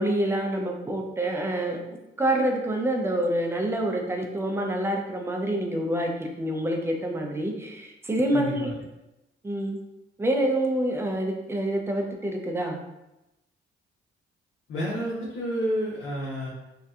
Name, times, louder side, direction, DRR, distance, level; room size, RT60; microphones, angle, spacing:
voice 1, 0.0-8.7 9.4-9.8 10.2-12.8, right 1 dB, 10° right, 1 dB, 0.4 m, -27 dB
voice 2, 8.3-8.7 14.7-16.5, equal, 75° left, -6 dB, 0.7 m, -30 dB
2.6 x 2.1 x 2.3 m, 0.96 s
cardioid pair, 90°, 20 cm